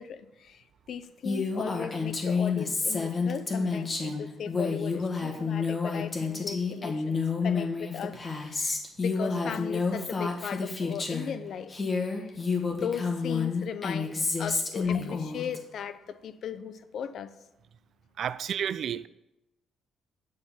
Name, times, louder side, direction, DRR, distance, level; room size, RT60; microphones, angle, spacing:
voice 1, 0.0-11.8 12.0-12.4 12.7-17.3, left 8 dB, 65° left, 0.6 m, -38 dB
Female speech woman speaking, 1.2-11.3 11.7-15.6, left 4 dB, 30° left, 1.6 m, -29 dB
voice 2, 18.2-19.1, right 9 dB, 65° right, 0.3 m, -31 dB
9.5 x 4.0 x 7.3 m
cardioid pair, 90°, 0 cm